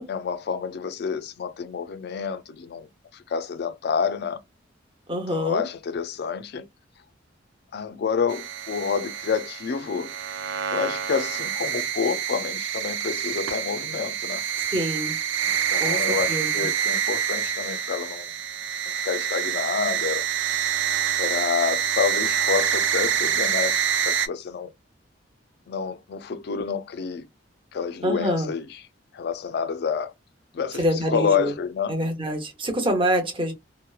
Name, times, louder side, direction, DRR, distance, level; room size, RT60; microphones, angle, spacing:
voice 1, 0.1-4.4 5.3-6.7 7.7-10.1 10.7-14.4 15.4-18.4 18.8-20.3 21.2-24.7 25.7-27.3 27.7-28.8 29.1-30.1 30.5-30.8 31.1-31.9, left 6 dB, 55° left, 0.3 m, -28 dB
voice 2, 5.1-5.6 14.7-15.2 15.7-16.7 28.0-28.5 30.8-31.5 31.9-33.5, equal, 25° right, 0.8 m, -26 dB
sound 1, 8.3-24.3, right 8 dB, 70° right, 0.4 m, -27 dB
2.8 x 2.1 x 2.3 m
head